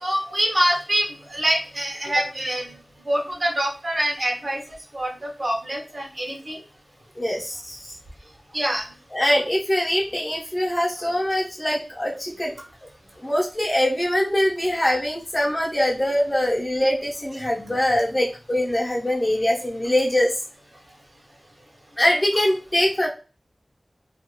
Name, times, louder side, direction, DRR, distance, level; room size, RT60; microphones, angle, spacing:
voice 1, 0.0-2.8 3.0-6.6 8.5-8.8, right 1 dB, 55° right, -1 dB, 0.9 m, -25 dB
voice 2, 7.2-7.9 9.1-12.5 13.2-20.4 22.0-23.1, left 1 dB, 30° left, -4 dB, 0.9 m, -23 dB
2.5 x 2.5 x 2.9 m, 0.34 s
wide cardioid pair, 65°, 0 cm